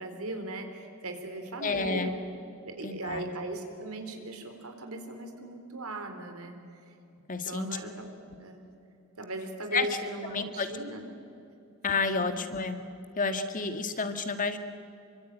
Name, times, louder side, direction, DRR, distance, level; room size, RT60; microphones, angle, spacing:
voice 1, 0.0-2.2 2.6-6.6 7.4-8.1 8.4-8.6 9.2-11.0 12.2-12.3, right 2 dB, 90° right, 5 dB, 4.1 m, -38 dB
voice 2, 1.6-2.1 2.8-3.3 7.3-7.7 9.7-9.9 10.3-10.7 11.8-12.8 13.2-14.6, left 4 dB, 40° left, 8 dB, 1.9 m, -30 dB
27.0 x 24.0 x 9.1 m, 2.6 s
head